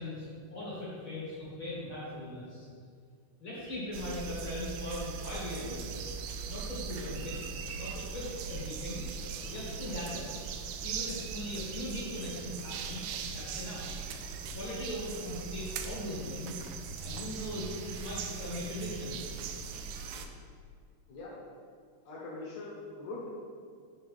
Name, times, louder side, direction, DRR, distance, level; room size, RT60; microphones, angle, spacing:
voice 1, 0.0-2.6 3.4-6.1 6.5-7.4 7.7-9.0 9.4-10.3 10.8-13.8 14.5-16.6 17.0-19.2, left 1 dB, 55° left, -8 dB, 1.4 m, -39 dB
sound 1, 3.9-20.3, right 6 dB, 85° right, 2.6 m, -40 dB
voice 2, 22.1-23.3, left 2 dB, 70° left, -5 dB, 1.8 m, -42 dB
8.6 x 6.3 x 3.4 m, 2.1 s
omnidirectional pair, 5.0 m